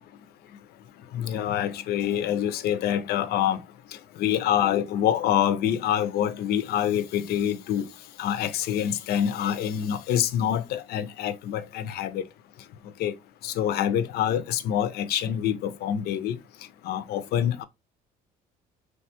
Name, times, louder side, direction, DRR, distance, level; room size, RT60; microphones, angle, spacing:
voice 1, 1.1-3.6 4.2-7.8 8.2-12.2 13.0-13.1 13.4-16.4 16.8-17.6, left 10 dB, 70° left, 0.4 m, -26 dB
3.2 x 2.2 x 2.7 m
cardioid pair, 110°, 17 cm